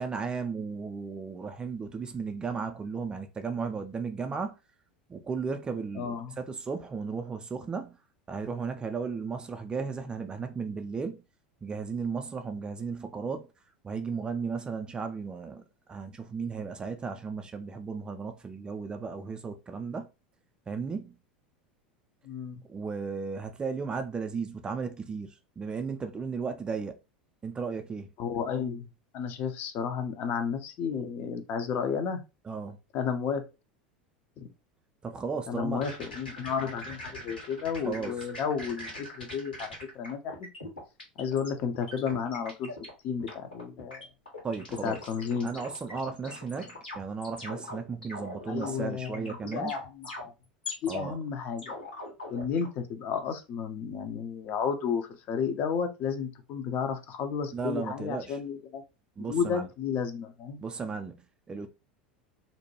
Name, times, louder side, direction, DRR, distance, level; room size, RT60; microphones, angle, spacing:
voice 1, 0.0-4.6 5.1-8.0 8.3-11.2 11.6-13.5 13.8-15.6 15.9-20.1 20.7-21.2 22.7-27.0 27.4-28.1 32.5-32.8 35.0-35.8 37.9-38.1 44.4-45.0 45.4-49.7 50.9-51.2 57.5-58.4 59.2-59.7 60.6-61.7, right 5 dB, 20° right, 0.3 m, -35 dB
voice 2, 5.9-6.4 22.2-22.6 28.2-28.9 29.1-32.2 32.9-33.4 34.4-34.5 35.5-39.7 39.9-40.4 41.2-42.7 43.0-44.1 44.8-45.6 48.5-50.3 50.8-51.7 52.3-58.8 59.3-60.6, left 6 dB, 40° left, 0.5 m, -32 dB
sound 1, 35.8-41.5 41.7-42.9 43.2-50.9 51.6-52.7, left 1 dB, 80° left, 1.3 m, -41 dB
2.6 x 2.1 x 2.9 m
figure-of-eight pair, 80°, 5 cm